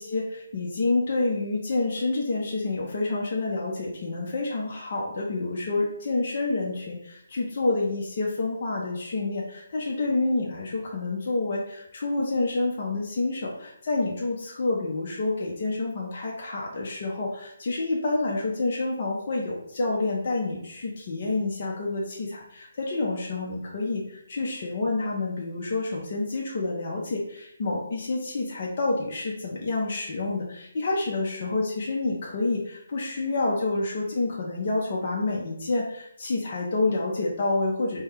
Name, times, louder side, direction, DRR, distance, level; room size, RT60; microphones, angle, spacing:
voice 1, 0.0-38.0, left 2 dB, 45° left, -3 dB, 0.7 m, -28 dB
4.3 x 2.1 x 3.5 m, 0.74 s
hypercardioid pair, 160°, 0 cm